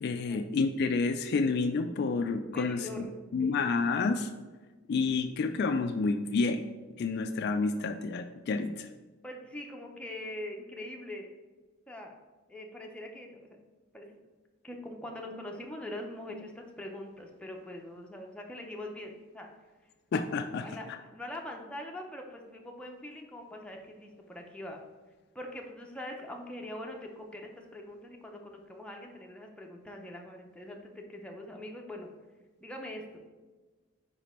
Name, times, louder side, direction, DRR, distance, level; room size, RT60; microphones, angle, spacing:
voice 1, 0.0-3.1 3.3-4.3 4.9-6.6 7.0-8.9 20.1-20.6, left 4 dB, 50° left, 7 dB, 0.3 m, -29 dB
voice 2, 2.3-3.3 9.2-11.3 11.9-12.1 12.5-13.6 13.9-14.1 14.6-19.5 20.6-24.8 25.3-32.1 32.6-33.3, left 1 dB, 5° left, 1 dB, 0.6 m, -43 dB
5.1 x 4.9 x 4.3 m, 1.3 s
head